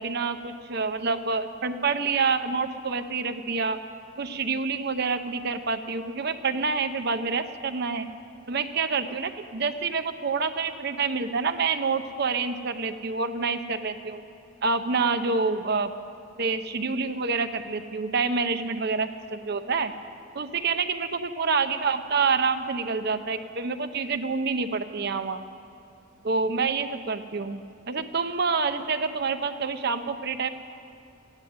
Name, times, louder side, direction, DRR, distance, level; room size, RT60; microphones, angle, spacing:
voice 1, 0.0-3.8 4.2-8.1 8.5-14.2 14.6-15.9 16.4-19.9 20.3-25.4 26.2-30.5, right 4 dB, 50° right, 8 dB, 0.7 m, -27 dB
15.0 x 9.8 x 9.3 m, 2.7 s
head